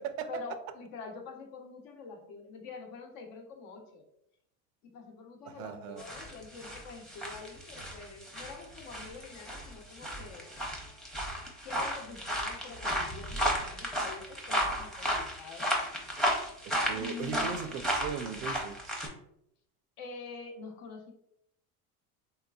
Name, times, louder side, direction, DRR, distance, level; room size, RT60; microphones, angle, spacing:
voice 1, 0.3-4.1 4.8-10.5 11.6-15.7 16.9-17.6 20.0-21.1, left 4 dB, 55° left, 3 dB, 0.9 m, -46 dB
voice 2, 5.6-6.0 16.9-18.8, right 7 dB, 80° right, 9 dB, 0.6 m, -37 dB
sound 1, 6.0-19.1, equal, ahead, 0.7 m, -34 dB
3.3 x 2.9 x 2.3 m, 0.75 s
supercardioid pair, 110°, 43 cm